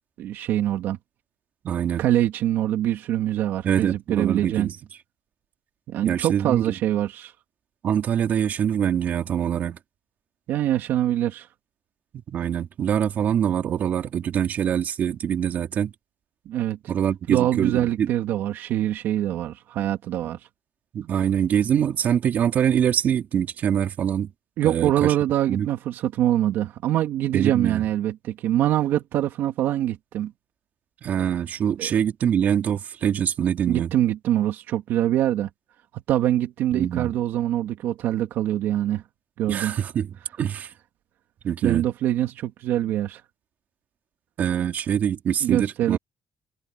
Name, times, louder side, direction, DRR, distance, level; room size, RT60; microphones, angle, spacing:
voice 1, 0.2-1.0 2.0-4.7 5.9-7.3 10.5-11.5 16.5-16.8 17.3-20.4 24.6-30.3 31.8-32.0 33.7-35.5 35.9-39.0 39.4-39.8 41.6-43.2 45.4-46.0, right 12 dB, 80° right, 2.4 m, -24 dB
voice 2, 1.6-2.0 3.6-4.8 6.0-6.6 7.8-9.8 12.1-15.9 16.9-18.1 20.9-24.3 24.6-25.1 25.5-25.7 27.3-27.8 31.0-33.9 36.7-37.1 39.5-40.1 40.4-40.7 41.4-41.8 44.4-46.0, right 9 dB, 50° right, 3.6 m, -24 dB
cardioid pair, 155°, 4 cm